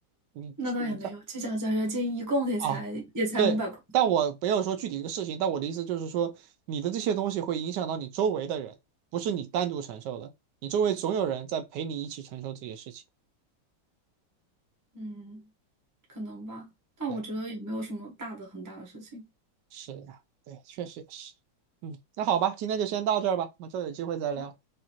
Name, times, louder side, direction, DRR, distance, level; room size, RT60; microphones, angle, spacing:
voice 1, 0.6-3.7 14.9-15.4 16.1-16.7 17.0-19.2, equal, 15° right, 0.7 m, -32 dB
voice 2, 3.9-6.3 6.7-8.7 9.1-10.3 10.6-13.0 17.1-17.2 19.7-20.2 20.5-21.3 21.8-24.5, right 8 dB, 70° right, 1.1 m, -29 dB
4.9 x 2.6 x 2.9 m
omnidirectional pair, 2.1 m